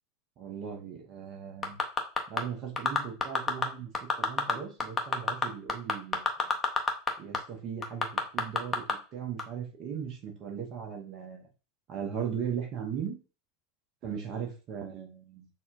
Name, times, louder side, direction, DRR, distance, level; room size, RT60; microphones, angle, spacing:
voice 1, 0.4-1.8 2.3-3.9 4.2-6.5 7.2-11.4 11.9-13.2 14.0-15.5, right 7 dB, 40° right, 2 dB, 1.0 m, -38 dB
sound 1, 1.6-2.4 2.8-3.6 3.9-4.5 4.8-7.1 7.3-7.4 7.8-8.9 9.4-9.5, left 4 dB, 20° left, 0.6 m, -26 dB
4.1 x 2.3 x 2.4 m, 0.33 s
figure-of-eight pair, 80°, 0 cm